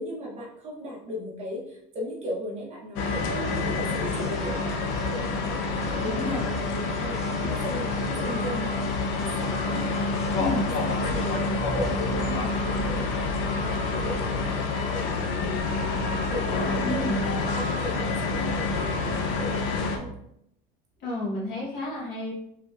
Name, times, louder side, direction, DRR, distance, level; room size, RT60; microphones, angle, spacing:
voice 1, 0.0-4.7 5.1-6.6 7.0-8.9 9.2-15.6 16.0-20.1, equal, 35° right, -3 dB, 0.7 m, -37 dB
sound 1, 3.0-20.0, left 3 dB, 70° left, 0.5 m, -28 dB
sound 2, 3.4-12.3, left 1 dB, ahead, 0.4 m, -41 dB
voice 2, 6.0-6.4 10.4-10.7 16.8-17.2 21.0-22.3, left 1 dB, 50° left, -4 dB, 1.2 m, -31 dB
3.2 x 2.7 x 2.3 m, 0.75 s
cardioid pair, 150°, 20 cm